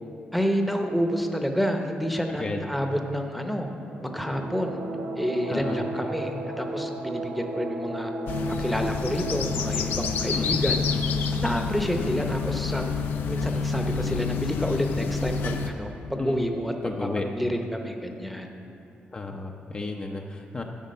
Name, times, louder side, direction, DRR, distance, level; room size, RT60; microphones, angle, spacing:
voice 1, 0.3-3.7 4.0-4.8 5.2-8.1 8.6-10.8 11.3-12.9 13.3-18.5, equal, ahead, 3 dB, 0.8 m, -29 dB
sound 1, 3.8-12.4, right 2 dB, 90° right, 0.9 m, -36 dB
voice 2, 5.5-5.8 10.3-10.6 16.2-16.4 16.8-17.2 19.1-20.6, left 3 dB, 30° left, 2 dB, 0.6 m, -33 dB
sound 2, 8.3-15.7, left 5 dB, 85° left, 0.7 m, -28 dB
10.5 x 7.0 x 5.5 m, 2.7 s
cardioid pair, 110°, 3 cm